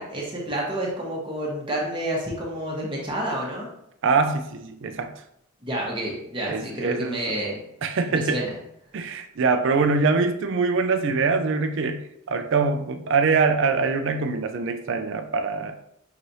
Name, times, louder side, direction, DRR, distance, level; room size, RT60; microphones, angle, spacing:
voice 1, 0.0-3.7 5.6-7.6 8.1-8.5, right 1 dB, 25° right, -3 dB, 0.9 m, -29 dB
voice 2, 4.0-5.1 6.5-7.2 7.8-8.4 8.9-12.0 12.3-15.8, right 4 dB, 55° right, 7 dB, 0.4 m, -23 dB
5.7 x 3.2 x 2.6 m, 0.76 s
head